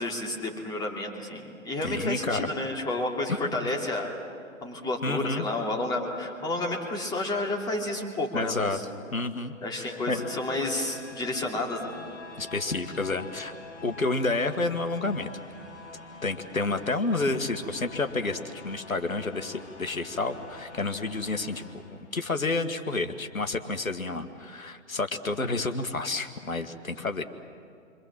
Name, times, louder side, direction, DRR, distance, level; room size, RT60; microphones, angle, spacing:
voice 1, 0.0-4.1 4.6-8.8 9.6-11.9 13.8-13.9, left 2 dB, 10° left, 0 dB, 2.9 m, -31 dB
voice 2, 1.8-2.5 3.6-3.7 5.0-5.5 8.3-8.8 9.1-10.2 12.4-13.5 13.8-15.3 16.2-27.2, left 3 dB, 85° left, 8 dB, 1.8 m, -30 dB
sound 1, 9.4-22.4, left 2 dB, 55° left, 6.0 m, -46 dB
28.5 x 25.0 x 7.5 m, 2.3 s
figure-of-eight pair, 130°, 41 cm